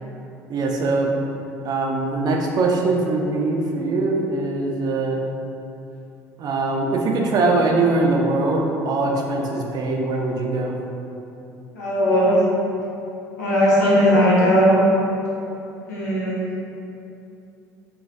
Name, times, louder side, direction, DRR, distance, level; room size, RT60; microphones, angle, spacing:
voice 1, 0.5-1.1 1.6-5.2 6.4-10.7, right 3 dB, 50° right, 0 dB, 0.5 m, -22 dB
voice 2, 11.7-12.4 13.4-14.8 15.9-16.4, equal, 85° left, -7 dB, 0.8 m, -17 dB
4.0 x 2.3 x 2.7 m, 2.8 s
hypercardioid pair, 65°, 9 cm